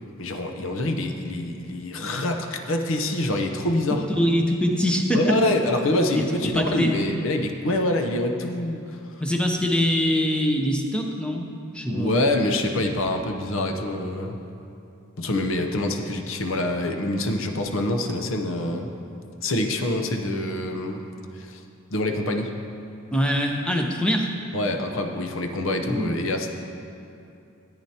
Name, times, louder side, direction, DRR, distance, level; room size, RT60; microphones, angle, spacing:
voice 1, 0.2-4.1 5.1-8.8 11.9-14.4 15.2-18.9 19.4-21.0 21.4-21.6 21.9-22.5 24.5-26.5, left 1 dB, 65° left, 4 dB, 0.8 m, -25 dB
voice 2, 3.9-5.2 6.1-6.2 6.5-6.9 9.2-11.5 11.7-12.1 23.1-24.3 25.9-26.1, equal, 5° left, 2 dB, 0.6 m, -23 dB
14.0 x 8.9 x 2.9 m, 2.7 s
head